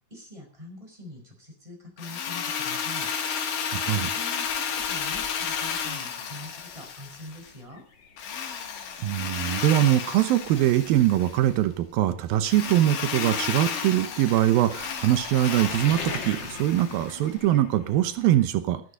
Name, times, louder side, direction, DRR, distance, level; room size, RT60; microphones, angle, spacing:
voice 1, 0.1-3.1 3.8-7.8, left 1 dB, 10° right, 2 dB, 4.9 m, -44 dB
Drill, 2.0-7.5 8.2-11.5 12.4-17.2, left 7 dB, 65° left, 3.3 m, -32 dB
voice 2, 3.7-4.1 9.0-18.8, right 13 dB, 90° right, 11 dB, 2.8 m, -23 dB
sound 1, 4.4-18.4, left 4 dB, 40° left, 2.1 m, -43 dB
13.0 x 12.5 x 5.3 m, 0.41 s
omnidirectional pair, 4.1 m